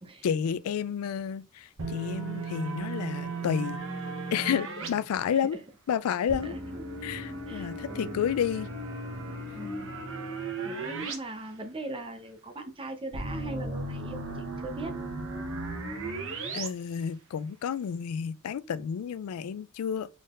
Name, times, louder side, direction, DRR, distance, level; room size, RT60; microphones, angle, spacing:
voice 1, 0.2-3.8 4.3-5.6 5.9-6.5 7.0-8.7 16.5-20.1, left 8 dB, 80° left, 0.3 m, -30 dB
sound 1, 1.8-4.9 6.3-11.2 11.5-11.6 13.1-16.7, right 3 dB, 65° right, 0.9 m, -36 dB
voice 2, 6.4-6.8 7.5-8.2 9.5-9.9 10.6-15.0, right 2 dB, 25° right, 0.7 m, -40 dB
3.9 x 3.6 x 2.5 m
head